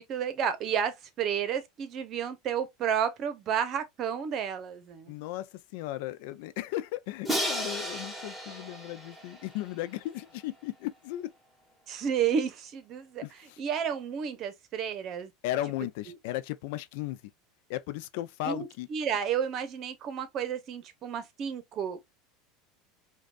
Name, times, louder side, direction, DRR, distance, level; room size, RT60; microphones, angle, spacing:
voice 1, 0.0-5.1 11.9-13.2 13.6-15.3 16.1-16.2 18.4-22.0, right 8 dB, 45° right, 0.8 m, -31 dB
voice 2, 5.1-11.3 13.2-13.6 15.4-17.2 17.7-18.9, left 14 dB, 70° left, 0.4 m, -36 dB
Crash cymbal, 7.3-10.2, equal, ahead, 1.4 m, -34 dB
5.0 x 2.3 x 2.4 m
supercardioid pair, 125°, 0 cm